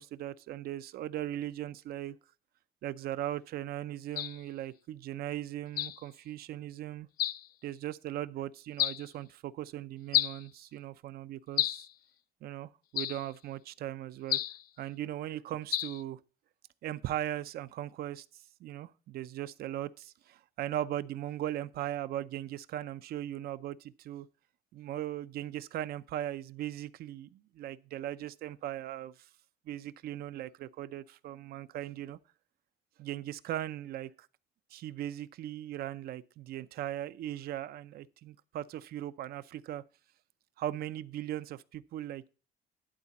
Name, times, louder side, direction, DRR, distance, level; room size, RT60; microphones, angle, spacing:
voice 1, 0.0-2.2 2.8-7.1 7.6-11.9 12.4-14.4 14.8-16.2 16.8-18.3 18.6-24.3 24.7-29.3 29.7-32.2 33.0-34.1 34.7-39.8 40.6-42.3, right 12 dB, 65° right, 0.6 m, -38 dB
sound 1, 4.2-4.4 5.8-6.0 7.2-7.5 8.8-9.0 10.1-10.4 11.6-11.9 13.0-13.3 14.3-14.6 15.7-16.0, left 12 dB, 60° left, 0.4 m, -31 dB
11.5 x 4.0 x 7.0 m
cardioid pair, 110°, 17 cm